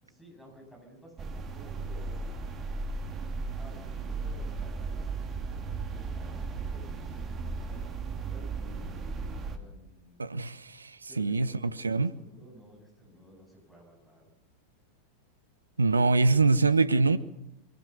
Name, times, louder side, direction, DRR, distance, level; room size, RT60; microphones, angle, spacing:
voice 1, 0.0-2.5 3.6-5.1 5.8-8.7 9.5-10.2 11.1-14.3, equal, 5° left, 1 dB, 8.0 m, -53 dB
sound 1, 1.2-9.6, right 4 dB, 25° right, 2.3 m, -36 dB
voice 2, 10.2-10.9 11.2-11.5 11.8-12.1 15.8-17.2, right 3 dB, 75° right, 16 dB, 0.9 m, -24 dB
23.0 x 16.5 x 7.0 m, 0.90 s
figure-of-eight pair, 90°, 0 cm